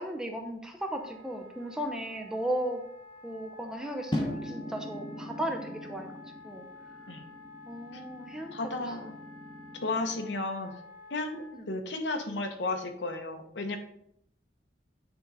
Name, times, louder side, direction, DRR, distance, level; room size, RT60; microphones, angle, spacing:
voice 1, 0.0-2.8 3.2-6.7 7.7-8.9 10.2-10.3 11.5-11.7, right 1 dB, 5° right, 3 dB, 0.7 m, -36 dB
Wind instrument woodwind instrument, 0.8-11.6, left 3 dB, 55° right, 1.0 m, -50 dB
sound 1, 4.1-10.3, left 1 dB, 25° left, 0.9 m, -40 dB
voice 2, 8.5-9.1 9.8-10.7 11.1-13.8, left 2 dB, 75° left, 6 dB, 1.0 m, -33 dB
8.9 x 3.7 x 4.0 m, 0.72 s
head